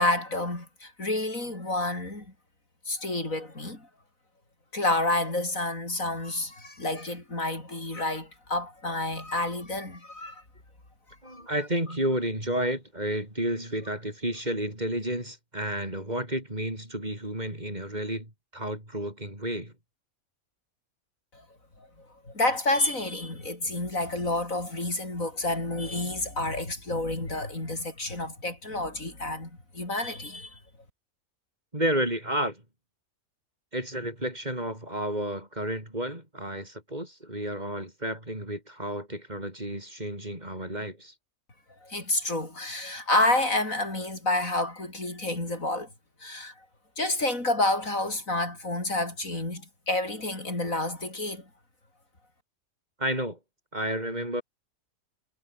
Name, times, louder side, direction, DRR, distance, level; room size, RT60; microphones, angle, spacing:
voice 1, 0.0-2.3 2.9-3.9 4.7-10.4 11.3-11.4 22.2-30.6 41.8-45.9 46.2-46.5 47.0-51.4, left 2 dB, 70° left, 6.8 m, -29 dB
voice 2, 11.2-19.7 31.7-32.6 33.7-41.1 53.0-53.4 53.7-54.4, right 1 dB, 30° right, 6.5 m, -31 dB
omnidirectional pair, 1.5 m